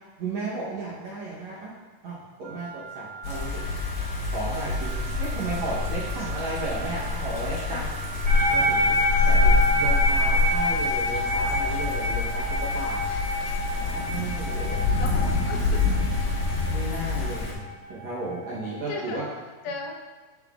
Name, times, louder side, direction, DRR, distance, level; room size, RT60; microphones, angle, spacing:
voice 1, 0.2-1.7 2.0-3.7 4.3-7.9 8.5-9.0 9.2-13.0 13.8-14.8 16.7-17.6 17.9-19.2, right 2 dB, 70° right, -6 dB, 1.8 m, -34 dB
Wind instrument woodwind instrument, 2.4-10.2, right 8 dB, 90° right, 3.4 m, -41 dB
sound 1, 3.2-17.5, left 3 dB, 65° left, 1.7 m, -26 dB
voice 2, 7.5-7.8 13.1-13.3 15.0-15.8 18.9-19.2 19.6-19.9, left 4 dB, 80° left, 1 dB, 2.6 m, -36 dB
sound 2, 8.3-18.8, left 1 dB, 25° right, 1.6 m, -27 dB
9.0 x 7.1 x 2.4 m, 1.3 s
omnidirectional pair, 4.3 m